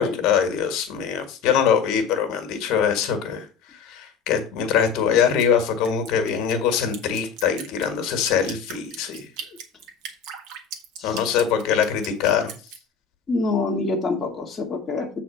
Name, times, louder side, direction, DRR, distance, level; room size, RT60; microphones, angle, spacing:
voice 1, 0.0-3.5 3.8-9.3 11.0-12.5, left 7 dB, 65° left, 6 dB, 1.7 m, -23 dB
Drip, 5.2-12.8, right 7 dB, 75° right, 1.6 m, -38 dB
voice 2, 13.3-15.2, left 3 dB, 20° left, -1 dB, 1.7 m, -26 dB
7.7 x 4.2 x 5.7 m, 0.33 s
cardioid pair, 165°, 0 cm